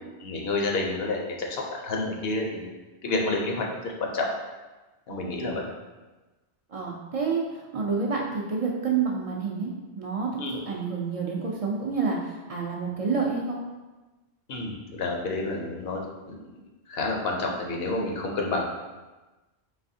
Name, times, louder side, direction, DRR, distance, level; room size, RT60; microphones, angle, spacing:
voice 1, 0.2-2.7 3.0-4.3 5.1-5.6 10.4-10.6 14.5-16.4 16.9-18.6, left 2 dB, 70° left, 0 dB, 0.8 m, -29 dB
voice 2, 5.1-5.6 6.7-10.3 10.7-13.6, right 5 dB, 50° right, -2 dB, 0.4 m, -29 dB
4.0 x 3.3 x 2.6 m, 1.2 s
omnidirectional pair, 1.1 m